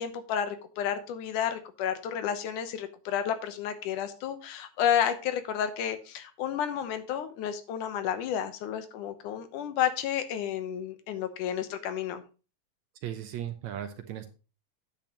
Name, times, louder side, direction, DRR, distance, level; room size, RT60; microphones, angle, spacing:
voice 1, 0.0-12.2, left 9 dB, 75° left, 10 dB, 2.4 m, -31 dB
voice 2, 13.0-14.3, right 10 dB, 70° right, 8 dB, 2.0 m, -37 dB
10.5 x 8.6 x 3.0 m, 0.32 s
omnidirectional pair, 3.7 m